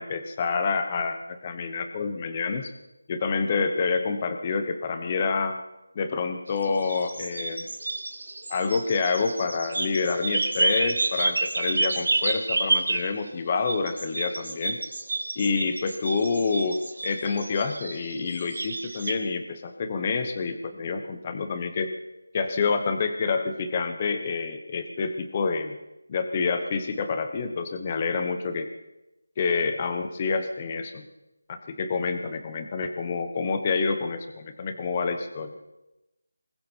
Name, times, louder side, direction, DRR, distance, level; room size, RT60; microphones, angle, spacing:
voice 1, 0.0-2.7 3.1-5.6 5.9-7.7 8.5-14.8 15.4-21.9 22.3-25.8 26.1-28.7 29.4-31.1 31.5-35.6, left 4 dB, 15° left, 8 dB, 1.0 m, -28 dB
sound 1, 6.5-13.3 13.7-19.1, right 3 dB, 45° right, 3.1 m, -29 dB
27.0 x 21.5 x 4.6 m, 0.98 s
figure-of-eight pair, 180°, 0 cm